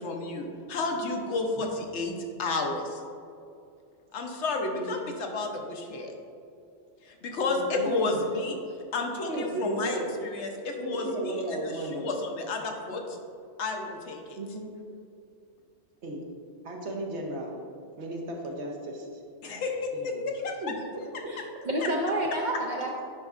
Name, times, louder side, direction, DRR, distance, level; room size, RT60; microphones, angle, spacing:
voice 1, 0.0-3.0 4.1-6.1 7.0-8.6 8.9-13.2 13.6-14.4 19.4-20.7 21.1-21.2 21.8-21.9, left 3 dB, 75° left, 3 dB, 1.0 m, -32 dB
voice 2, 7.5-8.2 9.3-10.1 10.8-12.1 14.4-14.7 16.0-16.2 16.6-17.6 18.0-19.1 19.9-20.2 20.6-20.7 21.2-21.3, right 1 dB, 70° right, 0 dB, 1.2 m, -34 dB
voice 3, 21.3-23.0, right 1 dB, 55° right, 0 dB, 0.6 m, -29 dB
8.7 x 5.1 x 2.4 m, 2.5 s
omnidirectional pair, 1.2 m